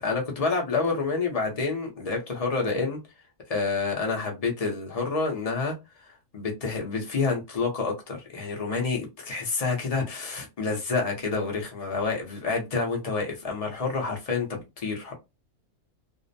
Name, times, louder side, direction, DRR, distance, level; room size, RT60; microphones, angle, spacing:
voice 1, 0.0-3.0 3.5-5.8 6.0-15.1, left 4 dB, 40° left, 0.5 m, -28 dB
2.5 x 2.0 x 2.6 m
omnidirectional pair, 1.5 m